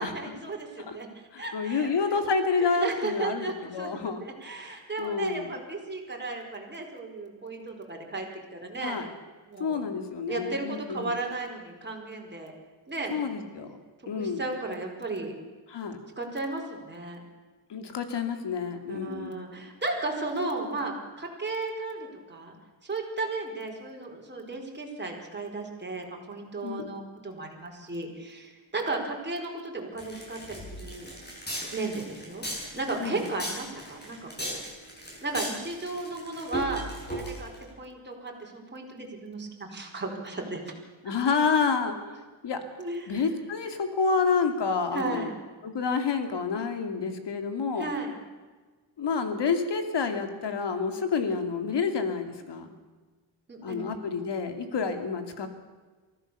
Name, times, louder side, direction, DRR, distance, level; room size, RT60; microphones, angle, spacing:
voice 1, 0.0-2.2 2.7-9.1 9.5-9.8 10.3-12.5 12.9-13.2 14.1-15.4 16.2-17.2 18.9-22.5 22.8-31.1 31.7-32.4 32.7-34.6 35.2-37.5 37.8-40.8 41.1-41.2 42.8-43.2 44.9-45.4 47.8-48.1 53.5-53.8, right 3 dB, 20° right, 0 dB, 4.7 m, -35 dB
voice 2, 1.3-4.2 5.0-5.5 8.8-9.0 9.6-11.1 13.1-13.7 14.1-14.4 15.7-16.0 17.7-19.4 26.6-26.9 33.0-33.2 41.0-42.0 42.4-42.6 43.1-45.3 45.6-47.9 49.0-52.7 53.6-55.5, left 5 dB, 60° left, 7 dB, 2.8 m, -28 dB
sound 1, 30.0-37.6, right 1 dB, 20° left, 7.2 m, -37 dB
24.0 x 16.0 x 7.0 m, 1.3 s
cardioid pair, 120°, 48 cm